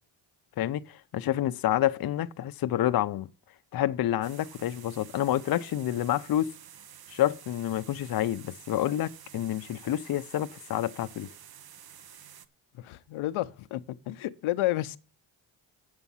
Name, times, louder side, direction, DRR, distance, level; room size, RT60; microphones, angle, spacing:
voice 1, 0.6-3.3 3.7-6.5 7.1-11.3, left 12 dB, 50° left, 0.6 m, -28 dB
sound 1, 4.2-12.5, right 9 dB, 50° right, 0.8 m, -50 dB
voice 2, 12.7-15.0, left 16 dB, 85° left, 0.7 m, -31 dB
8.8 x 7.2 x 5.6 m
cardioid pair, 105°, 47 cm